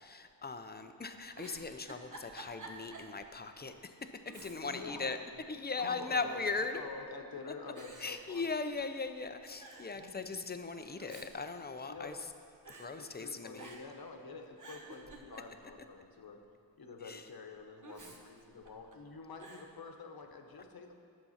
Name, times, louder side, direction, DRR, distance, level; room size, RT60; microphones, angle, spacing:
voice 1, 0.0-5.2 5.5-6.8 8.0-12.3 12.7-13.7 17.0-17.3, left 4 dB, 20° left, 8 dB, 0.6 m, -39 dB
Giggle, 1.3-3.2 3.6-3.7 4.2-4.9 5.3-6.1 6.8-7.2 7.8-9.0 9.3-9.4 9.6-10.0 10.8-12.3 12.7-12.9 13.6-14.0 14.4-15.8 17.8-19.0 19.4-19.7, right 2 dB, 40° right, 1.3 m, -52 dB
voice 2, 4.6-5.2 5.8-6.4 6.7-8.5 9.9-10.3 11.9-12.1 13.0-16.4 16.8-20.9, left 4 dB, 50° left, 4 dB, 1.1 m, -48 dB
11.0 x 7.0 x 5.7 m, 2.3 s
wide cardioid pair, 90°, 46 cm